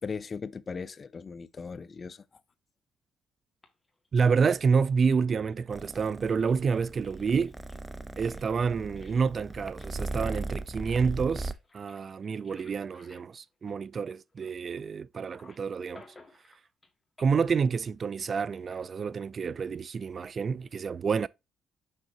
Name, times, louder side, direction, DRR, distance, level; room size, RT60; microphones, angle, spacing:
voice 1, 0.0-2.2, left 5 dB, 35° left, 0.6 m, -38 dB
sound 1, 3.6-4.9 5.5-14.8 15.1-16.9 17.2-17.6 18.6-19.2, left 2 dB, 15° left, 1.9 m, -59 dB
voice 2, 4.1-7.5 8.2-16.0 17.2-21.3, right 5 dB, 40° right, 0.3 m, -28 dB
Purr, 5.7-11.5, right 2 dB, 15° right, 0.7 m, -38 dB
6.4 x 5.8 x 2.8 m
cardioid pair, 90°, 0 cm